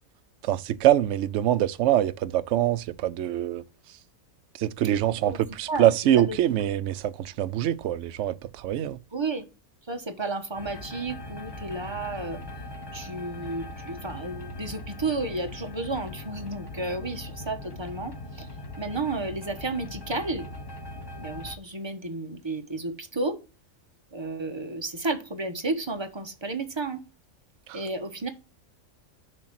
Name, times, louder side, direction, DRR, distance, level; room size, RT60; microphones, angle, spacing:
voice 1, 0.4-3.6 4.6-9.0, right 12 dB, 70° right, 0.8 m, -24 dB
voice 2, 9.1-9.5 9.9-12.4 12.9-18.5 18.8-20.5 21.2-23.4 24.1-27.0 27.7-28.3, right 3 dB, 20° right, 0.9 m, -32 dB
sound 1, 10.5-21.6, left 2 dB, 20° left, 1.0 m, -40 dB
6.5 x 3.7 x 5.7 m
omnidirectional pair, 1.5 m